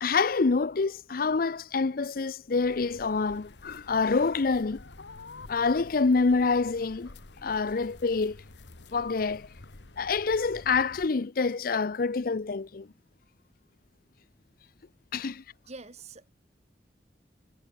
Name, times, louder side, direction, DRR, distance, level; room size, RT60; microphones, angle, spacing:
voice 1, 0.0-4.8 5.5-7.1 7.4-8.4 8.9-9.5 10.0-12.9 15.1-15.4, left 4 dB, 55° left, 0.5 m, -26 dB
sound 1, 2.6-11.1, left 2 dB, 80° left, 1.4 m, -49 dB
voice 2, 15.7-16.3, right 3 dB, 40° right, 1.5 m, -45 dB
head